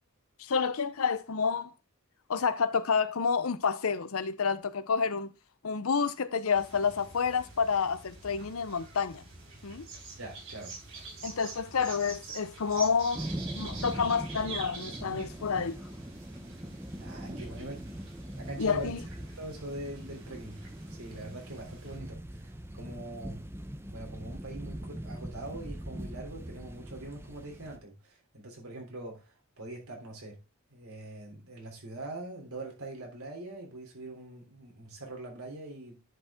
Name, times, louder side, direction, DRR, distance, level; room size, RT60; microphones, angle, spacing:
voice 1, 0.4-1.7 2.3-5.3 5.6-9.2 9.6-9.9 11.2-13.3 13.5-15.8 18.6-19.0, left 5 dB, 80° left, 0.7 m, -29 dB
sound 1, 6.5-22.0, right 3 dB, 60° right, 4.4 m, -47 dB
voice 2, 10.2-10.7 17.0-17.8 18.4-18.9 19.4-20.6 20.9-23.4 23.9-30.4 30.7-36.0, right 2 dB, 90° right, 3.3 m, -43 dB
sound 2, 13.1-27.8, right 1 dB, 10° right, 0.7 m, -41 dB
10.0 x 5.3 x 3.6 m
head